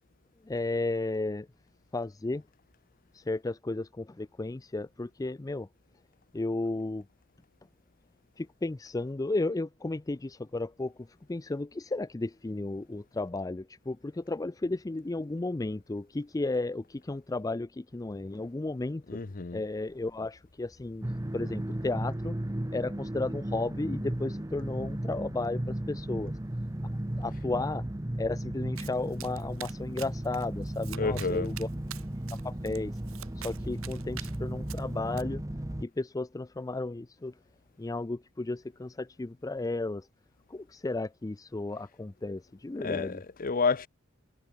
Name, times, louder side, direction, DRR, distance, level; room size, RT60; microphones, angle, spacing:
voice 1, 0.4-1.5 1.9-2.4 3.1-5.7 6.3-7.1 8.4-19.2 19.5-21.0 21.3-22.4 22.7-26.3 26.8-26.9 27.2-27.8 28.2-31.7 32.4-33.0 33.4-35.4 35.8-37.3 37.8-40.1 40.5-43.2, left 2 dB, 15° left, 0.4 m, -34 dB
voice 2, 19.1-19.6 31.0-31.5 42.8-43.9, left 4 dB, 40° left, 0.7 m, -30 dB
sound 1, 21.0-35.8, right 1 dB, 15° right, 0.8 m, -35 dB
Domestic sounds home sounds, 28.8-35.2, right 12 dB, 70° right, 1.2 m, -47 dB
head